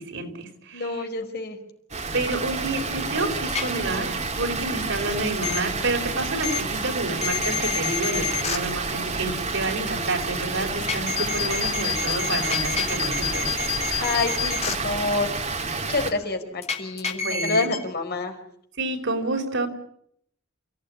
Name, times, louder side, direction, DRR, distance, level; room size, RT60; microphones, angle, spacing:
voice 1, 0.0-1.0 2.1-13.5 17.2-17.7 18.8-19.7, right 2 dB, 60° right, 4.7 m, -29 dB
voice 2, 0.7-1.6 14.0-18.3, left 3 dB, 50° left, 4.8 m, -28 dB
Water, 1.9-16.1, right 4 dB, 35° right, 3.0 m, -29 dB
sound 1, 3.5-3.6 5.4-5.6 6.4-6.6 7.2-8.6 10.8-14.7 16.6-17.8, left 7 dB, 30° left, 3.3 m, -27 dB
29.0 x 16.5 x 9.7 m
head